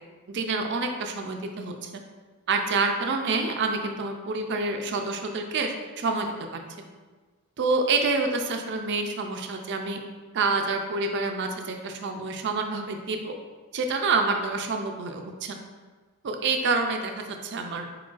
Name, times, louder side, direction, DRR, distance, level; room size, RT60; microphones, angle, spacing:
voice 1, 0.3-1.9 2.5-6.6 7.6-10.0 10.3-13.3 13.7-15.6 16.2-17.1 17.4-17.9, right 3 dB, 55° right, 4 dB, 0.4 m, -27 dB
4.5 x 3.8 x 2.5 m, 1.3 s
head